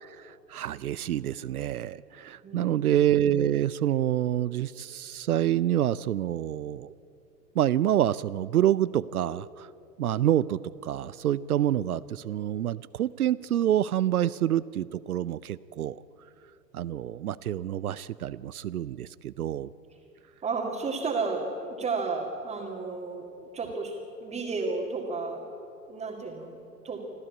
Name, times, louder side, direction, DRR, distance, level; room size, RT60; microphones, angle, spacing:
voice 1, 0.2-6.9 7.5-9.7 10.0-16.0 16.7-19.7, right 11 dB, 60° right, 18 dB, 0.6 m, -27 dB
voice 2, 2.4-2.9 20.4-25.5 25.9-27.1, right 4 dB, 15° right, -3 dB, 2.1 m, -33 dB
26.5 x 14.5 x 8.5 m, 2.7 s
figure-of-eight pair, 110°, 50 cm